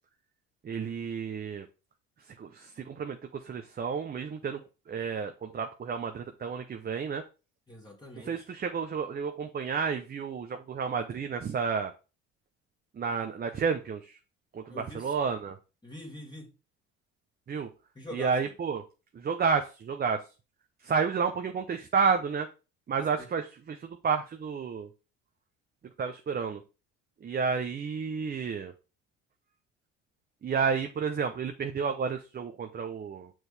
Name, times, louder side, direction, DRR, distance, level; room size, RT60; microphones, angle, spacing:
voice 1, 0.6-1.7 2.4-4.6 4.9-7.2 8.2-11.9 13.0-14.2 14.5-15.6 17.5-17.7 18.1-18.8 19.1-20.3 20.8-22.5 22.9-24.9 26.0-26.6 27.2-28.7 30.4-33.3, right 5 dB, 30° right, 5 dB, 0.7 m, -31 dB
voice 2, 7.7-8.5 14.7-15.1 15.8-16.5 18.0-18.3 23.2-23.3, left 1 dB, 15° left, -2 dB, 1.9 m, -44 dB
6.2 x 4.6 x 3.4 m, 0.31 s
supercardioid pair, 75°, 32 cm